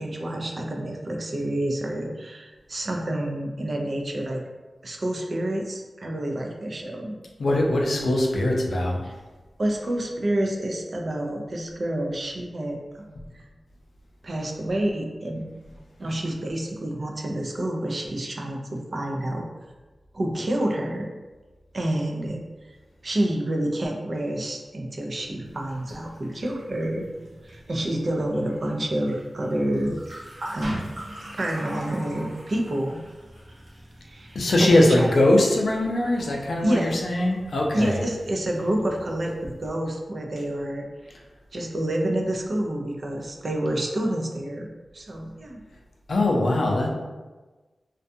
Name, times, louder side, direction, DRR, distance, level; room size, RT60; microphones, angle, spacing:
voice 1, 0.0-4.4 4.8-7.2 9.0-9.1 9.6-13.1 13.3-13.4 14.2-15.4 16.0-19.5 20.1-21.1 21.7-22.4 23.0-27.1 27.4-29.9 30.5-30.9 31.3-33.0 34.0-35.1 36.6-37.0 37.7-40.9 41.5-44.7 44.9-45.6, right 1 dB, 50° right, 1 dB, 0.4 m, -28 dB
voice 2, 7.4-9.0 34.3-38.0 41.1-41.2 46.1-46.9, left 1 dB, 75° left, 0 dB, 0.4 m, -21 dB
sound 1, 25.4-39.7, right 1 dB, 75° right, 0.7 m, -43 dB
2.4 x 2.2 x 2.6 m, 1.2 s
wide cardioid pair, 105°, 0 cm